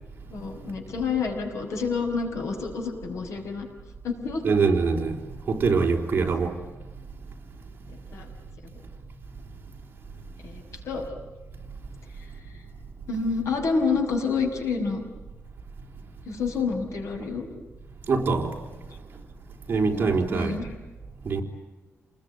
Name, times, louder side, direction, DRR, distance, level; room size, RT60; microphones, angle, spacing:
voice 1, 0.3-3.7 4.0-4.4 6.0-6.3 7.9-8.3 10.4-11.1 12.5-12.6 13.1-15.0 16.3-17.5 19.9-20.7, left 4 dB, 90° left, 5.8 m, -29 dB
voice 2, 4.4-5.1 5.5-6.5 18.1-18.6 19.7-20.6 21.2-21.4, right 4 dB, 40° right, 4.0 m, -23 dB
29.5 x 20.5 x 9.5 m
wide cardioid pair, 175°, 5 cm